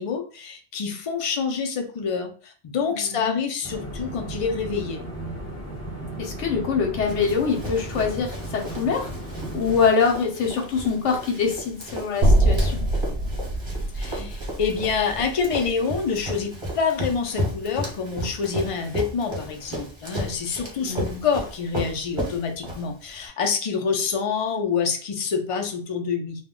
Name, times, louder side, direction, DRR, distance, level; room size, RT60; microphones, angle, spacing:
voice 1, 0.0-5.0 13.9-26.4, left 5 dB, 55° left, 4 dB, 0.3 m, -27 dB
voice 2, 2.9-3.4 6.2-9.1 9.5-12.9 20.8-21.2, left 5 dB, 85° left, 1 dB, 1.0 m, -24 dB
sound 1, 3.6-9.9, right 1 dB, 15° left, 0.7 m, -35 dB
Run, 7.1-23.2, equal, 25° right, 0.9 m, -34 dB
sound 2, 12.2-16.4, right 1 dB, 65° right, 0.8 m, -23 dB
2.2 x 2.1 x 3.6 m, 0.40 s
omnidirectional pair, 1.2 m